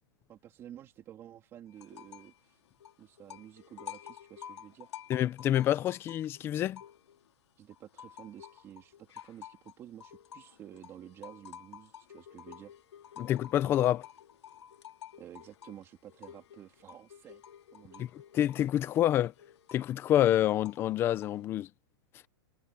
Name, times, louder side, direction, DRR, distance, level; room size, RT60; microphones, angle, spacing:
voice 1, 0.3-2.6 3.0-4.9 7.6-12.7 15.2-17.4 17.7-18.1, right 11 dB, 20° right, 2.8 m, -51 dB
sound 1, 1.8-2.4 2.7-7.3 7.7-21.5, left 9 dB, 80° left, 3.6 m, -51 dB
voice 2, 5.1-6.8 13.2-14.0 18.0-19.3 19.7-21.7, left 12 dB, 15° left, 0.7 m, -27 dB
supercardioid pair, 170°, 14 cm